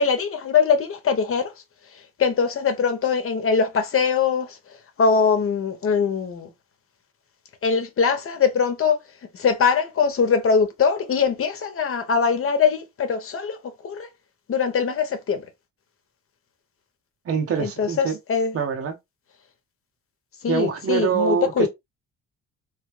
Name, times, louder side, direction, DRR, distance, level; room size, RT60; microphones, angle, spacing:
voice 1, 0.0-1.5 2.2-4.5 5.0-6.5 7.6-9.0 9.3-13.6 13.8-14.1 14.5-15.5 17.6-18.5 20.4-21.7, left 6 dB, 45° left, 1.0 m, -22 dB
voice 2, 17.3-18.2 18.5-19.0 20.5-21.7, right 7 dB, 50° right, 0.9 m, -24 dB
3.2 x 2.3 x 3.2 m
cardioid pair, 90°, 30 cm